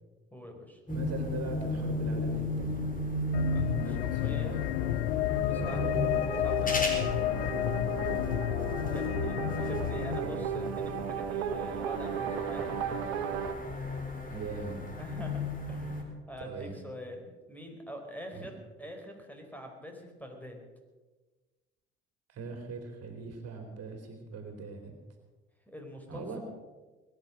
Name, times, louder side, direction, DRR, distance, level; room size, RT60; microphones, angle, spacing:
voice 1, 0.3-0.8 3.5-4.6 5.5-5.9 6.4-7.0 8.9-13.0 15.0-15.4 15.7-20.6 25.7-26.4, equal, 5° left, 3 dB, 4.6 m, -44 dB
sound 1, 0.9-16.0, left 1 dB, 25° left, 4.1 m, -36 dB
voice 2, 0.9-2.8 3.8-4.8 5.3-6.1 7.9-8.5 9.3-9.7 10.2-10.4 14.3-14.8 16.4-16.8 18.3-18.5 22.3-25.0 26.1-26.4, right 4 dB, 50° right, 5 dB, 3.3 m, -41 dB
sound 2, 3.3-10.2, left 14 dB, 85° left, 0.5 m, -31 dB
sound 3, 5.6-13.5, right 8 dB, 80° right, 1.2 m, -36 dB
21.5 x 10.5 x 6.3 m, 1.2 s
hypercardioid pair, 55°, 31 cm